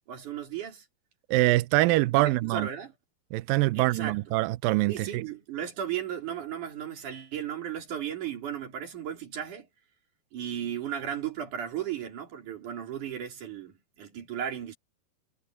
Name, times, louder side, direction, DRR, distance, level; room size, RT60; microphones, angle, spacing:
voice 1, 0.1-0.8 2.2-2.9 3.7-4.2 4.9-9.7 10.3-14.7, right 9 dB, 50° right, 4.6 m, -35 dB
voice 2, 1.3-2.7 3.3-5.3, right 18 dB, 85° right, 2.0 m, -24 dB
omnidirectional pair, 4.7 m